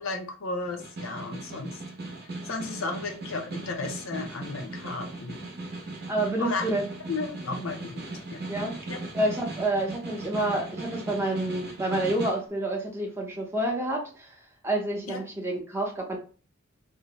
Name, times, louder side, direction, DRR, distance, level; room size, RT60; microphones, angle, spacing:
voice 1, 0.0-1.8 2.5-5.5 6.4-6.6 7.1-8.0 8.3-8.4 8.9-9.0 15.1-15.2, left 3 dB, 75° left, 3 dB, 0.5 m, -34 dB
Snare drum, 0.6-12.5, right 2 dB, 50° right, 0.7 m, -38 dB
voice 2, 6.1-6.8 8.5-8.7 9.1-14.4 14.6-16.2, right 1 dB, 10° right, 0 dB, 0.6 m, -28 dB
2.6 x 2.0 x 2.8 m, 0.38 s
head